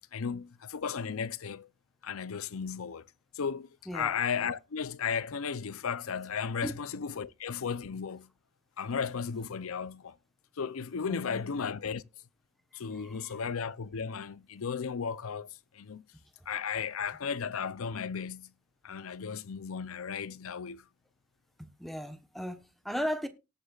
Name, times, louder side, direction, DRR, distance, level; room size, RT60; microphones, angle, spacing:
voice 1, 0.1-1.7 2.0-3.1 3.3-8.3 8.8-10.2 10.6-12.0 12.7-16.0 16.5-18.5 18.8-20.8, left 6 dB, 85° left, 0.6 m, -35 dB
voice 2, 11.1-11.4 12.9-13.3 21.6-23.3, equal, ahead, 1.0 m, -37 dB
18.5 x 8.0 x 2.4 m
head